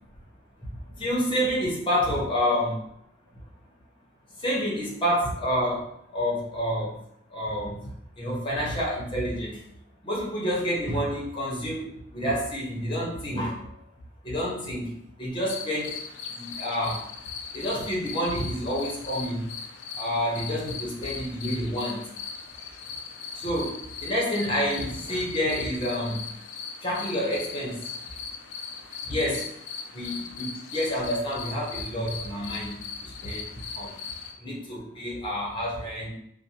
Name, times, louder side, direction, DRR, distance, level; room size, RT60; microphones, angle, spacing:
voice 1, 0.6-2.8 4.4-7.0 7.3-7.9 8.2-9.6 10.0-13.8 14.2-14.9 15.2-16.0 16.3-17.0 17.5-19.5 19.9-22.0 23.3-26.3 26.8-27.8 29.1-29.5 29.9-33.5 33.7-33.9 34.4-36.1, equal, 25° left, -4 dB, 0.7 m, -29 dB
sound 1, 15.5-34.3, left 6 dB, 70° left, 0.3 m, -39 dB
2.6 x 2.0 x 2.7 m, 0.75 s
head